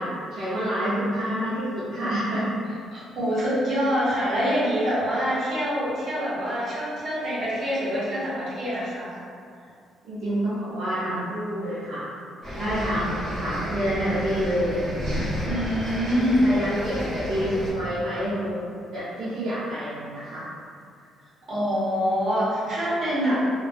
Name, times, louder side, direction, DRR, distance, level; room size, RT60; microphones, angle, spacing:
voice 1, 0.0-2.6 10.0-12.1 12.6-14.8 16.4-18.6 18.9-20.5, equal, 70° right, -12 dB, 0.6 m, -28 dB
voice 2, 2.9-9.2 12.5-12.6 15.4-16.5 21.5-23.4, equal, 50° right, -10 dB, 1.0 m, -25 dB
sound 1, 12.4-17.7, equal, 35° right, 0.8 m, -31 dB
2.5 x 2.3 x 2.3 m, 2.2 s
cardioid pair, 135°, 0 cm